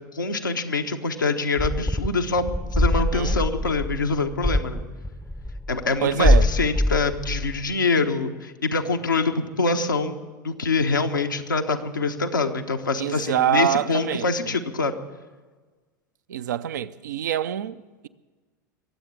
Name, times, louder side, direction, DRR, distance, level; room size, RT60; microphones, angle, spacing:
voice 1, 0.1-4.8 5.7-10.2 10.4-14.9, left 3 dB, 85° left, 1.2 m, -25 dB
sound 1, 1.6-6.0 6.2-7.7, left 1 dB, 5° left, 0.6 m, -24 dB
voice 2, 2.9-3.4 6.0-6.5 13.0-14.5 16.3-18.1, right 10 dB, 70° right, 0.6 m, -26 dB
22.5 x 8.1 x 7.3 m
figure-of-eight pair, 85°, 10 cm